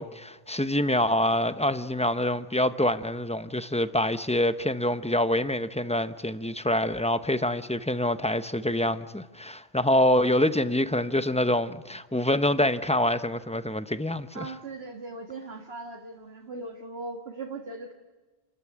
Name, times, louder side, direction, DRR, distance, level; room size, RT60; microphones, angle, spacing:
voice 1, 0.0-14.5, left 1 dB, 5° left, 0.7 m, -26 dB
voice 2, 14.3-17.9, right 3 dB, 80° right, 2.0 m, -39 dB
29.0 x 13.5 x 9.8 m
omnidirectional pair, 1.0 m